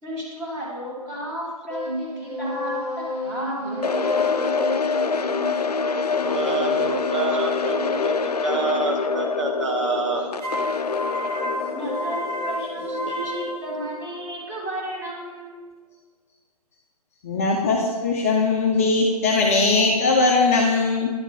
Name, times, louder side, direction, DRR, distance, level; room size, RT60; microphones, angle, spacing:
voice 1, 0.0-4.3 11.7-15.6, equal, 15° right, -6 dB, 1.9 m, -33 dB
sound 1, 1.7-7.1 10.4-14.3, equal, 75° right, 2.1 m, -31 dB
sound 2, 3.8-13.9, left 5 dB, 75° left, 0.4 m, -26 dB
voice 2, 6.2-10.8 13.1-13.3, right 4 dB, 50° right, 3 dB, 0.7 m, -28 dB
voice 3, 17.2-21.1, left 3 dB, 20° left, -1 dB, 0.6 m, -20 dB
10.0 x 3.6 x 4.9 m, 1.4 s
figure-of-eight pair, 140°, 20 cm